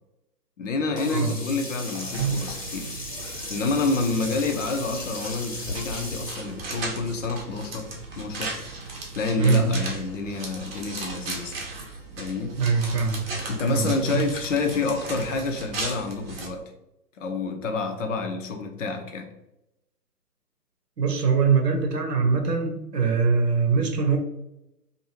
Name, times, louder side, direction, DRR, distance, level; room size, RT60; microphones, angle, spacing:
voice 1, 0.6-2.9 3.4-7.9 8.2-8.5 9.1-11.6 12.2-12.5 13.4-16.7 17.2-19.3, left 4 dB, 50° left, 5 dB, 0.6 m, -28 dB
Sink (filling or washing), 1.0-6.4, left 2 dB, 85° left, 1.3 m, -36 dB
sound 1, 2.0-16.5, right 4 dB, 40° right, 0.7 m, -36 dB
voice 2, 9.4-9.7 12.6-13.3 13.7-14.3 21.0-24.2, right 5 dB, 80° right, 3 dB, 0.8 m, -22 dB
2.6 x 2.5 x 2.8 m, 0.89 s
figure-of-eight pair, 130°, 48 cm